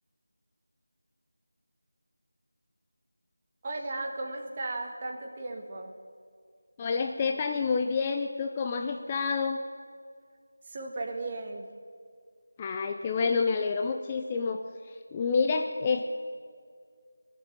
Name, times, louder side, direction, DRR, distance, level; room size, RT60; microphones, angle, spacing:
voice 1, 3.6-5.9 10.7-11.7, right 2 dB, 25° right, 2 dB, 1.6 m, -36 dB
voice 2, 6.8-9.6 12.6-16.0, left 5 dB, 20° left, 5 dB, 0.5 m, -28 dB
21.0 x 7.4 x 9.2 m, 2.2 s
figure-of-eight pair, 165°, 0 cm